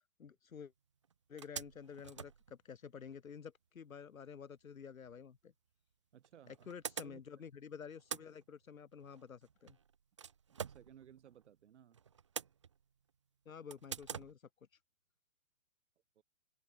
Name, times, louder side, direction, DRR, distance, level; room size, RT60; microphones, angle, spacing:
voice 1, 0.2-0.7 1.3-5.5 6.7-9.8 13.4-14.4, left 7 dB, 75° left, 1.3 m, -50 dB
sound 1, 0.6-0.7 1.0-1.1 1.4-3.2 5.2-5.3 6.2-7.6 7.8-11.6 11.9-13.1 13.7-14.3, right 7 dB, 25° right, 0.4 m, -47 dB
voice 2, 6.1-6.7 7.0-7.2 10.5-12.0 16.1-16.2, right 9 dB, 55° right, 2.8 m, -60 dB
open air
figure-of-eight pair, 120°, 42 cm